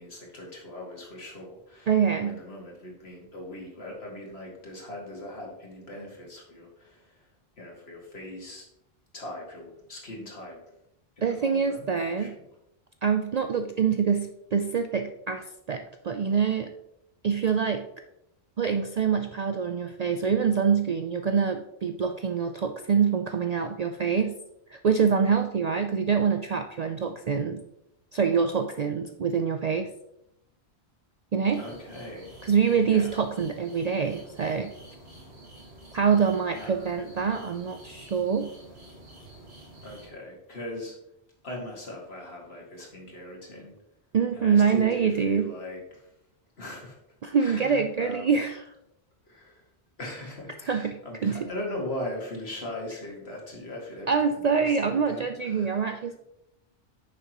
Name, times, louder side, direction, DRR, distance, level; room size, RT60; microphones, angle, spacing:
voice 1, 0.0-7.3 7.6-8.7 9.1-10.7 11.2-12.5 31.6-32.4 32.8-33.1 36.5-36.7 39.8-41.0 41.4-43.7 44.4-46.1 46.6-47.0 47.4-48.3 49.3-49.6 50.0-55.9, left 1 dB, 70° left, -1 dB, 2.3 m, -40 dB
voice 2, 1.9-2.4 11.2-12.4 13.0-16.7 17.2-17.9 18.6-24.4 24.7-27.6 28.1-29.9 31.3-31.6 32.4-34.7 35.9-38.5 44.1-45.5 47.2-48.6 50.7-51.5 54.1-56.2, right 6 dB, 55° right, 7 dB, 0.4 m, -25 dB
sound 1, 31.4-40.1, right 1 dB, 80° right, 2.1 m, -49 dB
9.6 x 6.6 x 2.9 m, 0.82 s
omnidirectional pair, 1.1 m